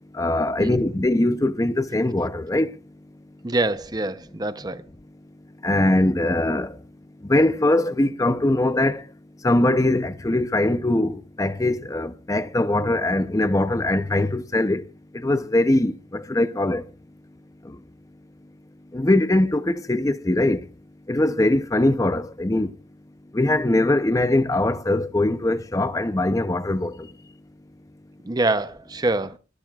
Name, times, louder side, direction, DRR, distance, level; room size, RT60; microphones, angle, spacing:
voice 1, 0.1-2.8 5.6-6.8 7.2-9.1 9.4-14.9 15.1-16.9 17.6-17.8 18.9-20.7 21.1-22.7 23.3-27.1, left 1 dB, 20° left, 0.6 m, -21 dB
voice 2, 3.4-4.8 28.2-29.4, right 2 dB, 20° right, 0.7 m, -25 dB
26.0 x 12.0 x 2.4 m
head